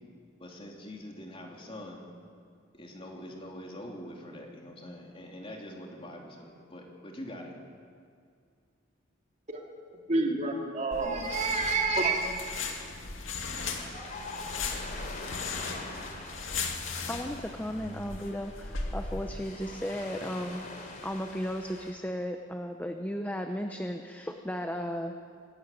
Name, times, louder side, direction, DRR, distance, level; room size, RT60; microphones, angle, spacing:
voice 1, 0.4-2.0 2.7-7.5, left 1 dB, 30° left, 0 dB, 3.3 m, -44 dB
voice 2, 10.1-12.6, right 3 dB, 40° right, 1 dB, 2.6 m, -29 dB
sound 1, 10.9-19.5, left 4 dB, 90° left, 2.3 m, -37 dB
Ocean, 13.5-21.9, left 2 dB, 45° left, 3.2 m, -44 dB
voice 3, 17.1-20.6 21.0-25.1, equal, 10° left, 5 dB, 0.8 m, -35 dB
24.0 x 13.0 x 9.3 m, 2.2 s
head